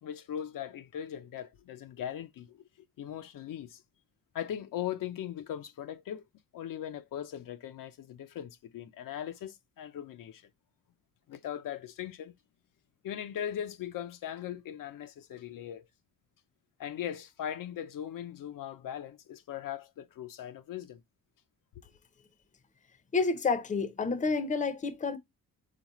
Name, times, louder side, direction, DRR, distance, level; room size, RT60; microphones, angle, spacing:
voice 1, 0.0-2.6 3.0-3.8 4.3-6.2 6.5-10.4 11.3-12.3 13.0-15.9 16.8-21.0, left 10 dB, 70° left, 0.6 m, -39 dB
voice 2, 23.1-25.2, left 4 dB, 20° left, 0.6 m, -29 dB
4.1 x 3.9 x 2.9 m
cardioid pair, 145°, 35 cm